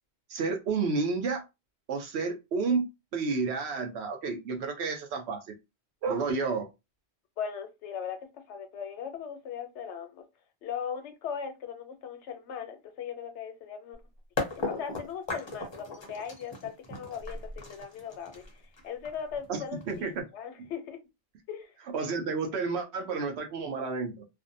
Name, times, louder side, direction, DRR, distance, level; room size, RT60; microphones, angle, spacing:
voice 1, 0.3-1.4 1.9-5.4 6.0-6.7 19.5-20.2 21.9-24.2, right 4 dB, 75° right, 0.8 m, -31 dB
voice 2, 7.4-10.2 10.6-14.0 14.6-21.0 21.5-21.7, left 7 dB, 90° left, 0.9 m, -39 dB
sound 1, 13.9-14.0 14.4-20.2, left 3 dB, 35° left, 0.5 m, -37 dB
2.5 x 2.1 x 2.5 m
omnidirectional pair, 1.1 m